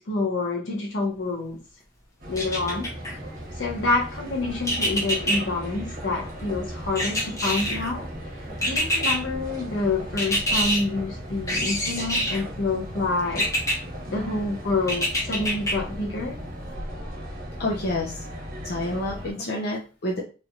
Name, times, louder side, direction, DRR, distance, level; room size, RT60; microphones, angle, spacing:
voice 1, 0.0-1.6 2.3-2.9 3.6-8.1 8.6-13.5 14.1-16.4, left 3 dB, 85° left, 1.0 m, -27 dB
sound 1, 2.2-19.3, equal, 50° right, 1.1 m, -37 dB
sound 2, 2.4-3.1 4.7-5.4 7.0-7.9 8.6-9.2 10.2-10.8 11.5-12.4 13.4-13.8 14.9-15.7 16.2-16.3, equal, 15° left, 0.8 m, -25 dB
voice 2, 17.6-18.2 18.6-20.2, left 1 dB, 55° left, 0.6 m, -28 dB
3.3 x 2.7 x 2.4 m
head